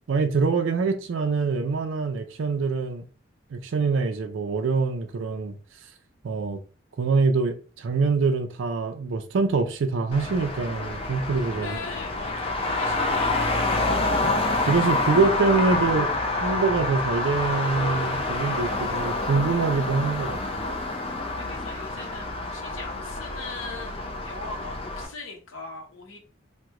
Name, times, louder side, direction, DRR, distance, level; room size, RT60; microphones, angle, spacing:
voice 1, 0.1-3.0 3.5-5.5 6.2-6.6 7.0-11.8 14.6-16.1 16.4-20.4, right 4 dB, 70° right, 0.4 m, -24 dB
Traffic noise roadway noise, 10.1-25.1, left 2 dB, 30° left, 0.4 m, -27 dB
voice 2, 11.5-14.0 21.4-26.2, left 4 dB, 85° left, 0.8 m, -40 dB
3.0 x 2.1 x 3.6 m
head